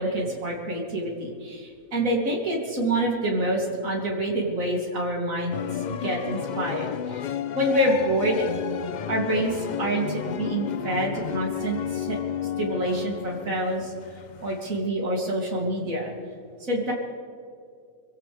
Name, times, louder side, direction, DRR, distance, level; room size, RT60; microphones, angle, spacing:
voice 1, 0.0-5.6 6.0-7.2 7.5-8.5 9.1-12.2 12.6-13.9 14.4-16.1 16.6-16.9, right 1 dB, 70° right, -2 dB, 3.2 m, -27 dB
sound 1, 5.5-14.8, left 9 dB, 80° left, 0.4 m, -32 dB
25.0 x 16.5 x 3.4 m, 2.3 s
omnidirectional pair, 1.5 m